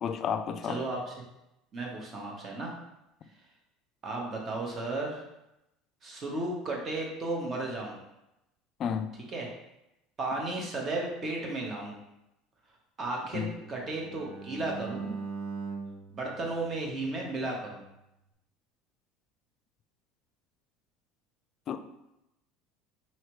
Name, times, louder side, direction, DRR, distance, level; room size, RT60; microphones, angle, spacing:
voice 1, 0.0-0.8 8.8-9.1 13.3-13.5 21.7-21.8, left 7 dB, 45° left, 9 dB, 0.3 m, -31 dB
voice 2, 0.7-1.2 1.7-2.7 4.0-5.2 6.0-8.0 9.3-9.5 10.2-12.0 13.0-15.1 16.1-17.9, right 2 dB, 35° right, -1 dB, 1.1 m, -34 dB
Bowed string instrument, 13.2-17.4, right 4 dB, 55° right, 0.9 m, -41 dB
4.3 x 3.2 x 3.1 m, 0.90 s
supercardioid pair, 115°, 0 cm